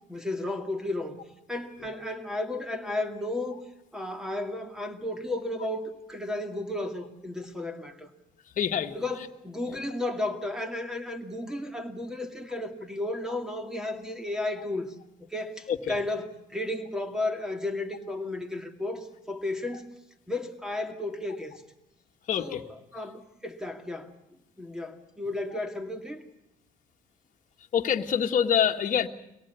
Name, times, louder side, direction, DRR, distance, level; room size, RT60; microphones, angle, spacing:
voice 1, 0.1-1.2 1.5-3.6 3.9-8.1 8.9-14.9 15.2-19.9 20.3-21.5 22.4-24.1 24.6-26.2, left 2 dB, 5° right, 6 dB, 2.3 m, -33 dB
voice 2, 8.6-9.0 15.7-15.9 22.3-22.6 27.7-29.1, left 8 dB, 50° left, 4 dB, 1.7 m, -25 dB
24.0 x 18.0 x 8.2 m, 0.90 s
cardioid pair, 110°, 17 cm